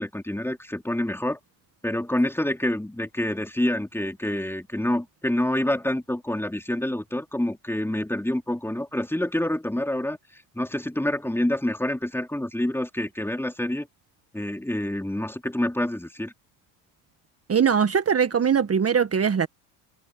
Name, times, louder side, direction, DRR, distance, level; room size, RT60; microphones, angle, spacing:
voice 1, 0.0-1.4 1.8-13.9 14.3-16.3, left 1 dB, 5° left, 3.4 m, -27 dB
voice 2, 17.5-19.5, right 7 dB, 30° right, 1.7 m, -21 dB
open air
hypercardioid pair, 70°, 45 cm